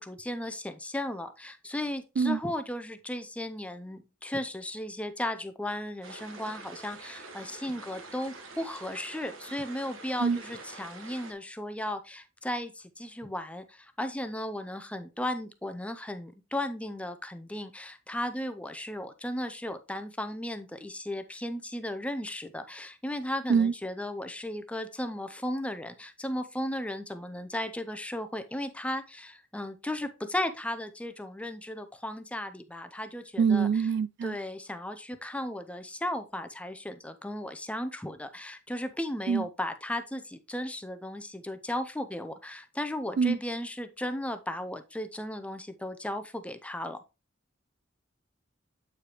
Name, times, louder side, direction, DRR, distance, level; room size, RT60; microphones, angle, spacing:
voice 1, 0.0-33.7 34.2-47.0, left 1 dB, 5° left, 0.5 m, -35 dB
sound 1, 6.0-11.3, right 3 dB, 85° right, 1.3 m, -46 dB
voice 2, 33.4-34.4 39.3-39.5 43.2-43.4, right 6 dB, 55° right, 0.3 m, -24 dB
8.4 x 4.9 x 2.9 m
head